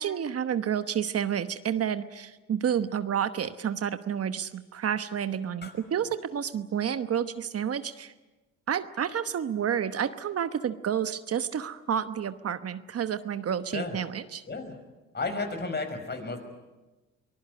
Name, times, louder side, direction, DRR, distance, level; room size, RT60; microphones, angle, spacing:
voice 1, 0.0-8.1 8.7-14.4, right 8 dB, 50° right, 11 dB, 1.1 m, -30 dB
voice 2, 15.1-16.4, left 3 dB, 35° left, 7 dB, 5.7 m, -33 dB
24.0 x 20.0 x 9.6 m, 1.1 s
cardioid pair, 90°, 30 cm